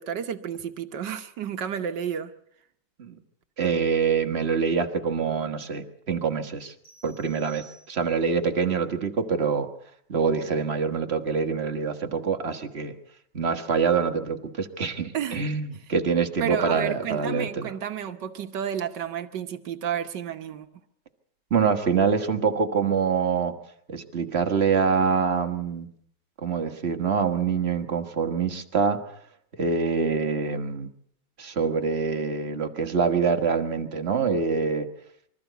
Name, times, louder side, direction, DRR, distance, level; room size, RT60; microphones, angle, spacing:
voice 1, 0.0-2.3 15.1-15.4 16.4-20.7, right 9 dB, 60° right, 8 dB, 1.5 m, -31 dB
voice 2, 3.6-6.7 7.0-9.7 10.1-12.9 13.3-17.7 21.5-23.5 23.9-25.9 26.4-29.1 29.6-30.9 31.4-34.9, right 5 dB, 35° right, 6 dB, 1.4 m, -25 dB
sound 1, 6.8-8.4, right 4 dB, 30° left, 6.5 m, -54 dB
25.0 x 14.0 x 8.0 m, 0.69 s
omnidirectional pair, 2.3 m